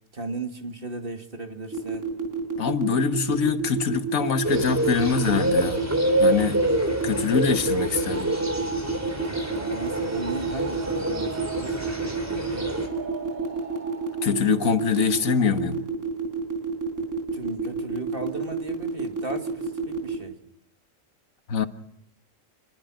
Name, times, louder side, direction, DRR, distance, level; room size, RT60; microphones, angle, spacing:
voice 1, 0.1-2.1 9.2-12.8 17.0-17.1 17.3-20.4, right 2 dB, 40° right, 2.6 m, -36 dB
sound 1, 1.7-20.1, right 5 dB, 65° right, 4.7 m, -29 dB
voice 2, 2.6-5.8 6.2-6.6 7.0-8.3 14.2-15.8 21.5-21.7, left 6 dB, 85° left, 1.7 m, -24 dB
sound 2, 4.4-12.9, right 1 dB, 10° right, 3.4 m, -27 dB
sound 3, 8.1-15.7, right 4 dB, 85° right, 2.6 m, -41 dB
26.5 x 22.0 x 6.3 m
omnidirectional pair, 1.4 m